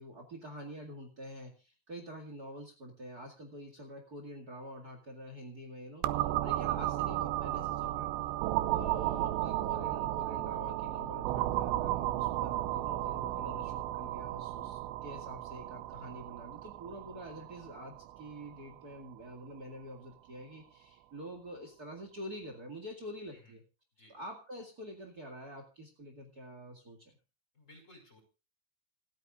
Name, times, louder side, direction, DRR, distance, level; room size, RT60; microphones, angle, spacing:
voice 1, 0.0-8.1 8.7-23.6 24.1-27.2, equal, 60° right, 4 dB, 0.9 m, -47 dB
sound 1, 6.0-19.6, right 15 dB, 80° right, 2.8 m, -34 dB
voice 2, 27.5-28.2, left 1 dB, 15° left, 3 dB, 5.4 m, -58 dB
28.0 x 9.5 x 2.5 m, 0.33 s
omnidirectional pair, 5.6 m